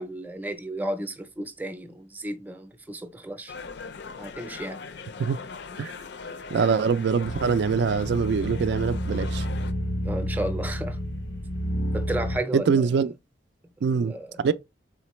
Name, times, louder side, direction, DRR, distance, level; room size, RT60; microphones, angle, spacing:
voice 1, 0.0-3.5 4.2-4.8 10.0-11.0 11.9-13.0 13.9-14.4, right 1 dB, 10° right, 0.6 m, -33 dB
sound 1, 3.5-9.7, left 5 dB, 65° left, 0.5 m, -40 dB
voice 2, 6.5-9.4 12.5-13.1 13.8-14.5, right 5 dB, 65° right, 0.3 m, -24 dB
sound 2, 7.2-12.4, equal, 90° left, 0.8 m, -30 dB
4.0 x 3.8 x 3.0 m
head